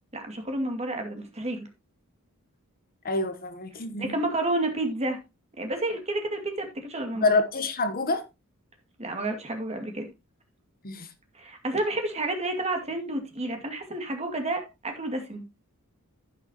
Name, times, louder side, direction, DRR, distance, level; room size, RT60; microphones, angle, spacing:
voice 1, 0.1-1.7 4.0-5.2 5.6-7.3 9.0-10.1 11.3-15.5, right 2 dB, 30° right, 2.3 m, -30 dB
voice 2, 3.0-4.1 7.2-8.2 10.8-11.1, left 3 dB, 40° left, 1.0 m, -26 dB
15.0 x 6.1 x 2.9 m
head